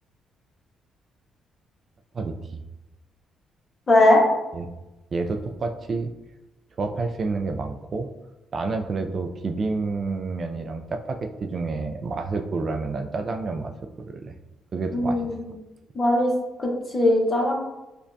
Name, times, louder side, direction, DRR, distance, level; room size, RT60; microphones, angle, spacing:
voice 1, 2.1-2.6 4.5-4.7 5.1-6.1 6.8-8.1 8.5-13.7 14.1-14.4 14.7-15.3, right 3 dB, 45° right, 6 dB, 0.3 m, -29 dB
voice 2, 3.9-4.2 14.9-15.4 15.9-16.3 16.6-17.5, left 1 dB, 35° left, 0 dB, 0.9 m, -19 dB
5.1 x 2.2 x 2.6 m, 1.0 s
cardioid pair, 90°, 0 cm